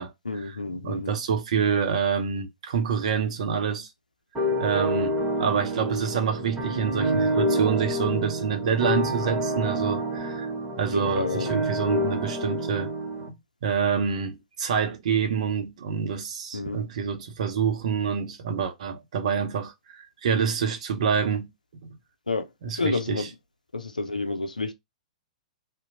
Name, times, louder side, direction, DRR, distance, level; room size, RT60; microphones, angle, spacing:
voice 1, 0.2-1.1 10.9-11.5 16.5-16.8 22.3-23.3 23.7-24.7, left 3 dB, 90° left, 0.5 m, -29 dB
voice 2, 0.8-3.9 4.6-10.5 10.8-12.9 13.3-13.4 13.6-21.5 21.8-21.9 22.6-23.3, right 7 dB, 60° right, 0.7 m, -27 dB
sound 1, 4.3-13.3, right 1 dB, 20° right, 1.2 m, -28 dB
2.8 x 2.1 x 2.6 m
figure-of-eight pair, 110°, 4 cm